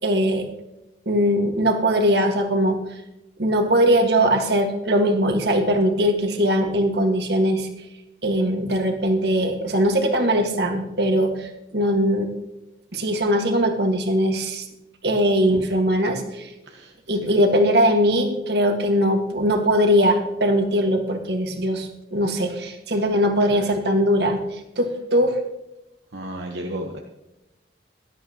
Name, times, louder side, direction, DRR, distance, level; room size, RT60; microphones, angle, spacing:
voice 1, 0.0-0.4 1.0-2.8 3.4-7.7 8.2-12.3 12.9-14.6 15.0-16.5 17.1-25.4, equal, 65° right, 4 dB, 1.7 m, -20 dB
voice 2, 16.6-17.3 23.0-23.7 24.8-25.0 26.1-27.0, right 1 dB, 80° right, 1 dB, 1.1 m, -35 dB
17.0 x 11.5 x 3.0 m, 0.94 s
head